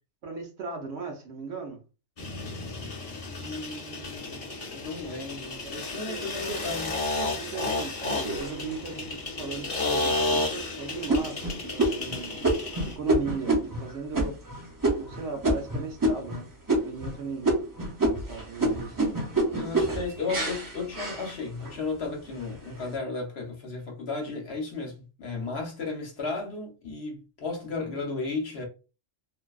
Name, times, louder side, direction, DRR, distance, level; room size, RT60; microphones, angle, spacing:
voice 1, 0.2-1.8 5.6-5.7 6.1-6.6 7.2-12.5 12.8-14.4 15.0-16.5 16.8-17.5 18.3-19.0, right 4 dB, 65° right, 0.9 m, -37 dB
sound 1, 2.2-13.0, left 2 dB, 35° left, 0.6 m, -32 dB
voice 2, 3.3-4.4 4.7-6.9 19.6-28.6, left 3 dB, 60° left, 0.9 m, -34 dB
sound 2, 8.3-9.1 9.7-9.8 10.3-10.6 11.1-16.4 16.7-17.2 17.4-21.8 22.2-22.8, right 1 dB, 25° right, 0.4 m, -28 dB
2.5 x 2.1 x 2.3 m
omnidirectional pair, 1.3 m